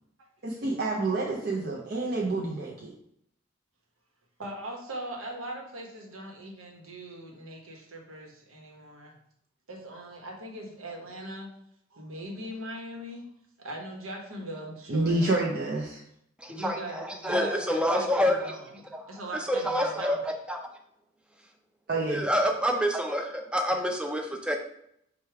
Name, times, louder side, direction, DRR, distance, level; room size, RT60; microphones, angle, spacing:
voice 1, 0.4-2.9 14.9-16.0 21.9-22.3, right 2 dB, 50° right, -4 dB, 0.6 m, -28 dB
voice 2, 4.4-9.1 9.7-11.5 11.9-13.2 13.6-15.3 16.5-18.6 19.1-20.2, right 1 dB, 80° right, 1 dB, 1.0 m, -40 dB
voice 3, 16.4-18.6 18.9-19.1 19.3-20.7 22.1-24.6, equal, 5° right, 3 dB, 0.4 m, -27 dB
4.9 x 2.3 x 4.5 m, 0.74 s
head